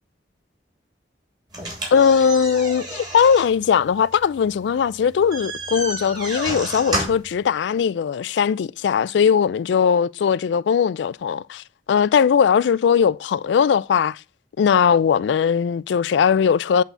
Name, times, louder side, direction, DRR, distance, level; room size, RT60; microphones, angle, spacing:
sound 1, 1.5-7.4, right 1 dB, 25° right, 3.1 m, -31 dB
voice 1, 1.9-14.2 14.6-16.8, left 7 dB, 80° left, 0.3 m, -19 dB
8.3 x 4.0 x 6.8 m
head